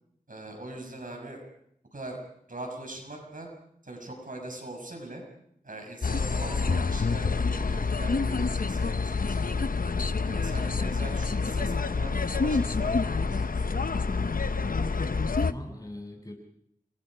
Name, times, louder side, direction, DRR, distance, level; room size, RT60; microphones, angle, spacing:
voice 1, 0.3-1.4 1.9-2.2 2.5-3.5 3.8-5.2 5.6-9.6 10.2-13.6, right 1 dB, 70° right, 2 dB, 6.5 m, -41 dB
sound 1, 6.0-15.5, left 4 dB, 80° left, 0.8 m, -27 dB
voice 2, 14.6-16.3, left 1 dB, 25° left, 1 dB, 7.8 m, -43 dB
29.0 x 21.5 x 5.1 m, 0.71 s
wide cardioid pair, 55°, 14 cm